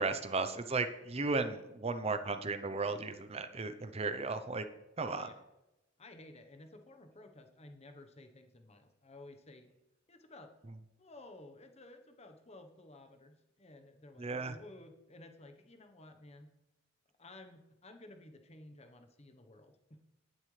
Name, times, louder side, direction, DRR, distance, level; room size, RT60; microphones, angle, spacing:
voice 1, 0.0-4.7 5.0-5.3 14.2-14.6, right 3 dB, 30° right, 9 dB, 0.7 m, -35 dB
voice 2, 5.0-5.4 6.0-9.7 10.1-10.5 11.0-16.5 17.2-20.0, left 2 dB, 30° left, 6 dB, 1.0 m, -54 dB
19.0 x 7.6 x 3.3 m, 0.96 s
head